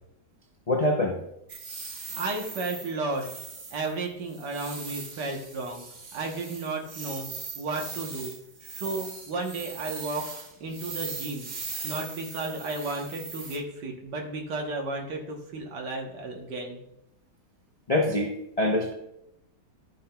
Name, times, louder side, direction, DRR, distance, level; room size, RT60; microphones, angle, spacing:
voice 1, 0.7-1.2 17.9-18.9, left 1 dB, 55° left, 0 dB, 0.4 m, -24 dB
sound 1, 1.5-13.6, right 4 dB, 40° right, 0.7 m, -40 dB
voice 2, 1.9-3.3 3.7-5.8 6.1-7.3 7.6-8.3 8.6-10.3 10.6-11.5 11.8-16.8, right 3 dB, 80° right, 1 dB, 1.7 m, -33 dB
13.0 x 5.6 x 2.3 m, 0.80 s
omnidirectional pair, 1.8 m